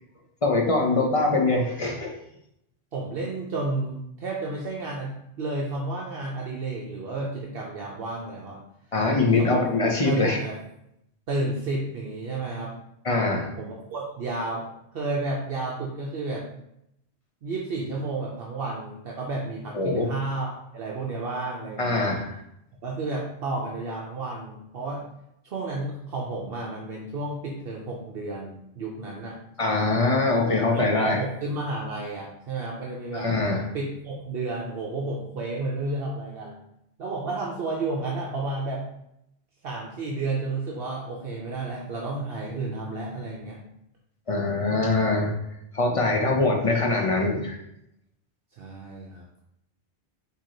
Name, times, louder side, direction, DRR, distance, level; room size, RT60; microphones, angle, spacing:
voice 1, 0.4-2.1 8.9-10.4 13.0-13.5 19.7-20.1 21.8-22.4 29.6-31.2 33.1-33.6 44.3-45.3 45.7-47.6, left 3 dB, 35° left, 0 dB, 0.7 m, -23 dB
voice 2, 2.9-8.6 9.4-9.6 10.0-10.6 11.3-12.7 13.6-16.5 17.4-22.0 22.8-25.0 25.4-29.4 30.5-33.3 33.7-36.6 37.0-38.8 39.6-43.6 48.6-49.4, right 2 dB, 65° right, -2 dB, 0.8 m, -31 dB
4.6 x 2.9 x 3.8 m, 0.79 s
omnidirectional pair, 1.1 m